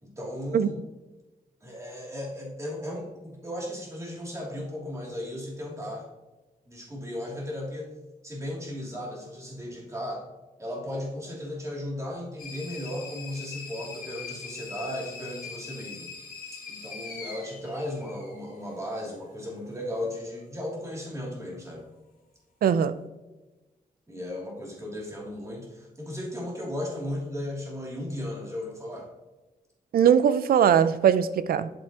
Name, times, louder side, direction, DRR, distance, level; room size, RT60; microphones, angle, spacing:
voice 1, 0.0-0.7 1.6-6.1 6.7-7.9 8.2-10.2 10.6-16.1 16.4-21.9 24.1-29.1, left 1 dB, 20° right, -3 dB, 2.7 m, -36 dB
sound 1, 12.4-18.8, left 5 dB, 70° left, 2.3 m, -42 dB
voice 2, 22.6-22.9 29.9-31.7, right 8 dB, 85° right, 14 dB, 0.5 m, -20 dB
7.9 x 7.5 x 2.9 m, 1.1 s
wide cardioid pair, 130°, 15 cm